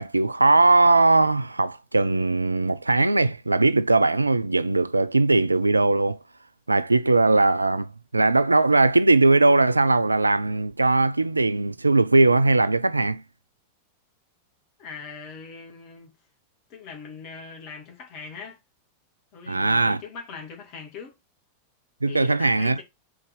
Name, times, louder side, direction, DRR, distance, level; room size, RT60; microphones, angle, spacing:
voice 1, 0.0-6.2 6.7-13.2 19.5-20.0 22.0-22.8, right 2 dB, 80° right, 0.3 m, -20 dB
voice 2, 14.8-16.1 16.7-18.6 19.3-21.1 22.0-22.8, left 5 dB, 40° left, 2.1 m, -41 dB
4.8 x 4.1 x 5.3 m
figure-of-eight pair, 90°, 0 cm